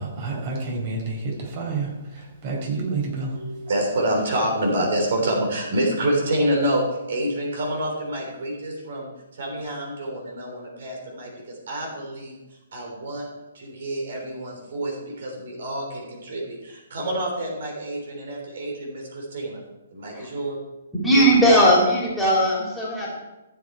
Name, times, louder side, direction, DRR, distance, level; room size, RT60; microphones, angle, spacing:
voice 1, 0.0-3.4, right 3 dB, 40° right, -1 dB, 4.6 m, -29 dB
voice 2, 3.3-12.3 12.7-13.3 13.5-19.6 19.9-20.6, right 1 dB, 55° right, -1 dB, 3.4 m, -27 dB
voice 3, 20.9-23.1, equal, 5° left, -5 dB, 3.4 m, -18 dB
14.5 x 8.0 x 4.6 m, 1.0 s
figure-of-eight pair, 125°, 0 cm